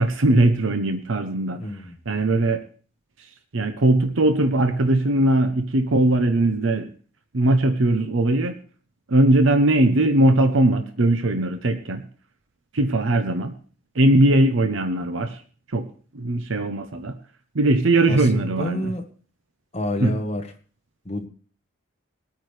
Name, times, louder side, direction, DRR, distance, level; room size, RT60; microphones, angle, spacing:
voice 1, 0.0-1.6 2.1-2.6 3.2-6.9 7.3-8.6 9.1-12.0 12.7-13.5 13.9-15.4 15.7-15.9 16.1-17.1 17.5-18.9 20.0-20.2, right 1 dB, 70° right, 9 dB, 0.8 m, -20 dB
voice 2, 1.6-2.0 18.1-19.0 19.7-20.5 21.0-21.3, left 1 dB, 30° left, 4 dB, 1.3 m, -28 dB
21.5 x 8.9 x 3.3 m, 0.42 s
head